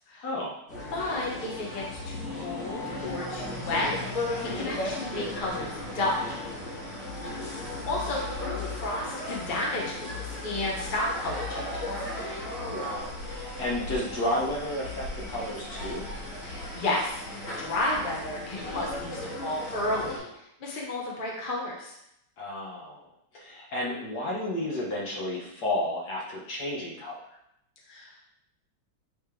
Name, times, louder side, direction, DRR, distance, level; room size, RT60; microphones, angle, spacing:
voice 1, 0.2-0.6 4.4-4.8 12.6-16.0 22.4-23.0 23.3-27.2, left 1 dB, 60° left, -4 dB, 1.9 m, -32 dB
sound 1, 0.7-20.2, left 2 dB, 75° left, 3.5 m, -36 dB
voice 2, 0.9-4.3 4.5-6.2 7.5-11.8 16.4-20.3 20.6-21.9 27.9-28.2, left 2 dB, 30° left, -3 dB, 1.3 m, -32 dB
8.5 x 4.3 x 3.4 m, 0.79 s
omnidirectional pair, 1.9 m